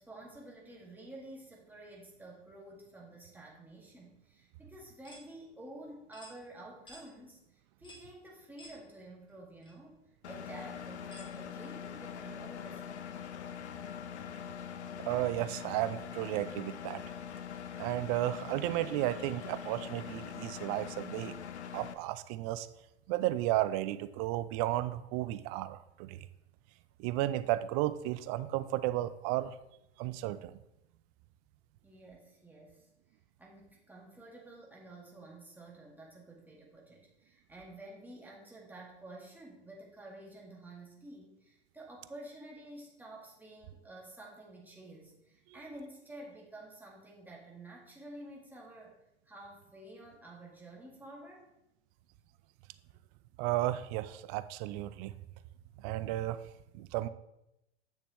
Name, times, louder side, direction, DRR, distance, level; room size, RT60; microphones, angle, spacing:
voice 1, 0.0-10.0 10.3-13.1 31.8-32.9 33.4-49.0 49.3-51.5, right 1 dB, 5° right, -3 dB, 2.0 m, -50 dB
sound 1, 5.0-5.3 6.1-6.4 6.9-7.1 7.8-8.1 8.6-8.8 9.6-9.7 11.1-11.3, left 1 dB, 15° left, 1.7 m, -52 dB
Engine, 10.2-21.9, left 8 dB, 85° left, 0.6 m, -43 dB
voice 2, 15.0-17.0 17.8-21.4 21.7-22.7 23.1-26.3 27.0-29.6 30.0-30.5 53.4-55.1 55.8-56.4 56.7-57.1, right 15 dB, 35° right, 14 dB, 0.4 m, -33 dB
8.1 x 6.7 x 3.1 m, 0.86 s
hypercardioid pair, 105°, 33 cm